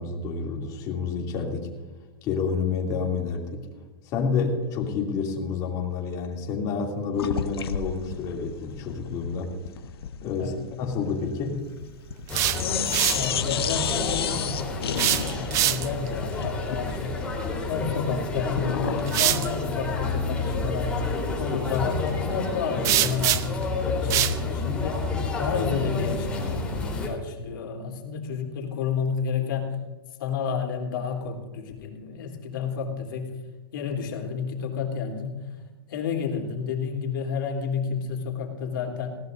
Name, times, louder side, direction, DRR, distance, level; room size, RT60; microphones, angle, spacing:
voice 1, 0.0-1.7 2.2-3.7 4.0-9.6 10.2-10.5 10.8-11.6, left 5 dB, 30° left, 0 dB, 2.8 m, -29 dB
sound 1, 7.2-12.3 12.6-19.1, left 8 dB, 80° left, 1.2 m, -32 dB
sound 2, 12.1-13.3 14.9-16.1 18.1-18.3 19.1-19.5 22.8-23.6 24.1-24.4, right 12 dB, 25° right, 0.6 m, -24 dB
sound 3, 12.3-27.1, left 3 dB, 10° left, 3.8 m, -30 dB
voice 2, 12.6-14.8 15.1-17.2 17.7-21.0 21.4-29.8 30.2-33.3 33.7-35.5 35.9-39.1, left 6 dB, 60° left, 2 dB, 3.5 m, -31 dB
20.0 x 17.5 x 2.7 m, 1.3 s
hypercardioid pair, 155°, 13 cm